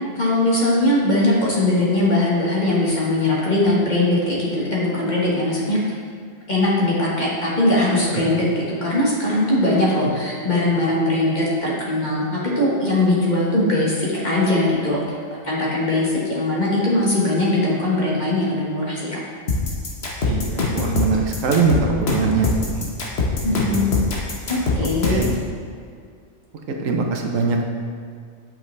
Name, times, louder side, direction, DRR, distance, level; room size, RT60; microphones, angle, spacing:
voice 1, 0.1-5.9 6.5-15.2 15.4-19.0 23.4-23.9 24.5-25.2, left 1 dB, 35° left, -6 dB, 1.6 m, -20 dB
sound 1, 19.5-25.4, left 3 dB, 55° left, 1.3 m, -23 dB
voice 2, 20.2-22.9 23.5-23.8 24.8-25.4 26.8-27.6, right 4 dB, 85° right, 2 dB, 1.2 m, -22 dB
7.9 x 6.0 x 3.3 m, 2.1 s
omnidirectional pair, 1.3 m